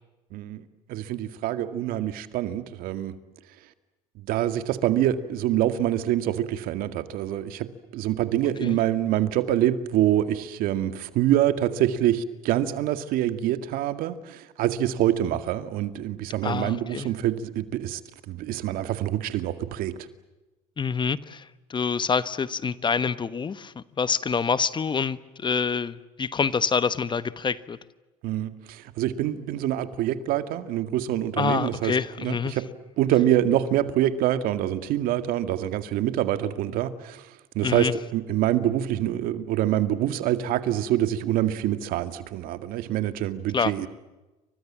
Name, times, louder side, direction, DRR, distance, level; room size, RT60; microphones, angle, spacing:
voice 1, 0.3-0.6 0.9-3.1 4.3-7.7 7.9-18.0 18.3-19.9 28.2-32.7 33.0-37.2 37.6-43.9, right 12 dB, 75° right, 11 dB, 2.0 m, -25 dB
voice 2, 16.4-17.1 20.8-21.4 21.7-27.8 31.4-32.6 37.6-37.9 43.5-43.7, left 5 dB, 30° left, 15 dB, 1.2 m, -26 dB
29.5 x 25.0 x 7.5 m, 1.1 s
supercardioid pair, 85°, 15 cm